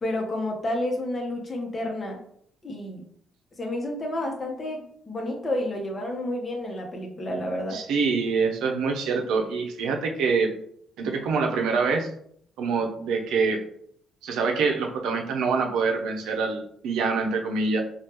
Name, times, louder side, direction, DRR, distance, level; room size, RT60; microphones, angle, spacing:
voice 1, 0.0-2.2 2.6-3.0 3.6-7.8, left 1 dB, 35° left, 1 dB, 0.8 m, -30 dB
voice 2, 7.7-10.5 11.0-12.1 12.6-13.6 14.2-17.8, right 4 dB, 85° right, 2 dB, 0.5 m, -25 dB
3.2 x 2.3 x 2.9 m, 0.65 s
cardioid pair, 90°, 0 cm